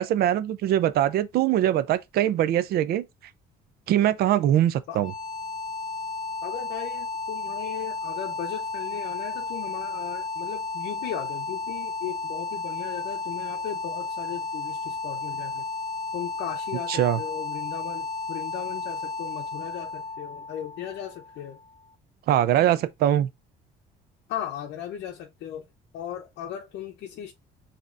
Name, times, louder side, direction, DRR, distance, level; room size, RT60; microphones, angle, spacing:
voice 1, 0.0-3.0 3.9-5.1 16.9-17.2 22.3-23.3, right 12 dB, 65° right, 0.5 m, -22 dB
sound 1, 4.9-21.8, left 3 dB, 25° left, 0.7 m, -33 dB
voice 2, 6.4-15.7 16.1-21.6 24.3-25.7 25.9-27.3, left 10 dB, 70° left, 0.7 m, -37 dB
5.1 x 2.9 x 2.5 m
cardioid pair, 110°, 18 cm